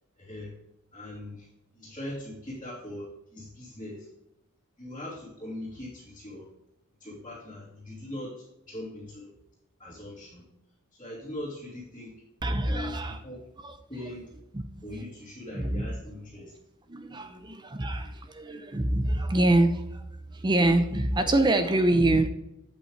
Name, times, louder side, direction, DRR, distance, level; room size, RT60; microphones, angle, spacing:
voice 1, 0.2-0.5 0.9-1.5 1.8-4.1 4.8-6.5 7.0-8.3 8.7-9.3 9.8-10.4 11.0-12.1 12.7-13.4 13.9-14.3 14.8-16.5 17.1-17.5 18.0-18.1, left 1 dB, 20° left, -8 dB, 2.9 m, -40 dB
voice 2, 12.4-13.2 13.6-13.8 14.5-14.6 14.9-15.0 15.5-15.9 16.9-20.0 20.3-22.3, right 1 dB, 20° right, 8 dB, 0.6 m, -25 dB
8.5 x 8.3 x 3.3 m, 0.86 s
head